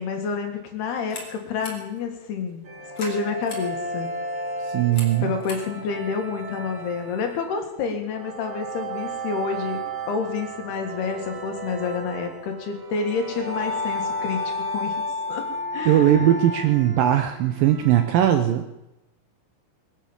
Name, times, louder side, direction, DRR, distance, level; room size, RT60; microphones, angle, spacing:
voice 1, 0.0-2.7 3.0-4.1 5.2-15.0 15.3-15.5 15.7-16.3, left 5 dB, 70° left, 4 dB, 3.9 m, -29 dB
sound 1, 0.9-7.1, left 2 dB, 40° left, 3.2 m, -44 dB
sound 2, 2.6-18.1, right 3 dB, 40° right, 1.9 m, -36 dB
voice 2, 4.7-5.3 15.9-18.6, right 11 dB, 75° right, 8 dB, 2.1 m, -19 dB
sound 3, 13.3-16.7, left 3 dB, 55° left, 1.4 m, -29 dB
21.0 x 9.5 x 7.2 m, 0.93 s
omnidirectional pair, 4.8 m